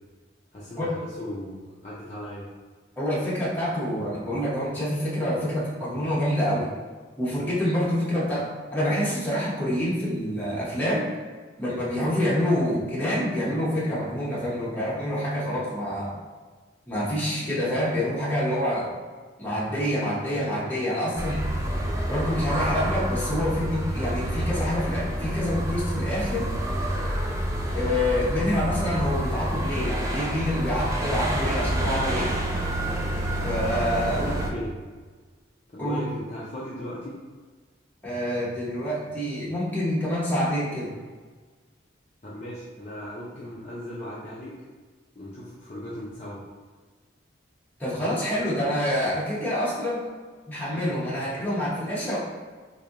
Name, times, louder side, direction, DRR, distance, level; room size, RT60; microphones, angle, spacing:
voice 1, 0.5-2.5 34.0-34.8 35.7-37.2 42.2-44.6 45.1-46.4, left 1 dB, 35° left, -7 dB, 0.6 m, -37 dB
voice 2, 3.0-6.7 7.2-8.5 8.7-11.1 11.6-16.2 16.9-18.9 19.4-21.4 22.1-26.5 27.7-32.3 33.4-34.2 35.8-36.0 38.0-40.9 47.8-50.0 50.5-52.2, equal, 10° left, -8 dB, 1.1 m, -27 dB
sound 1, 21.2-34.5, right 1 dB, 15° right, 0.4 m, -28 dB
3.2 x 2.7 x 3.8 m, 1.4 s
head